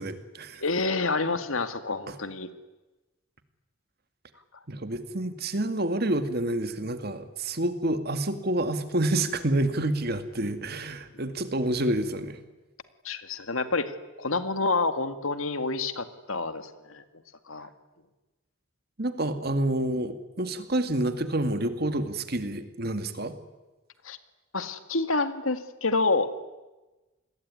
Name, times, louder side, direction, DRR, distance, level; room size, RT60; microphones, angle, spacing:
voice 1, 0.0-0.6 2.1-2.2 4.7-12.4 19.0-23.4, right 1 dB, 50° right, 10 dB, 2.1 m, -28 dB
voice 2, 0.6-2.5 13.0-13.9 14.2-17.0 17.5-17.7 24.0-24.2 24.5-26.4, left 3 dB, 80° left, 10 dB, 2.1 m, -28 dB
28.0 x 21.0 x 9.8 m, 1.1 s
head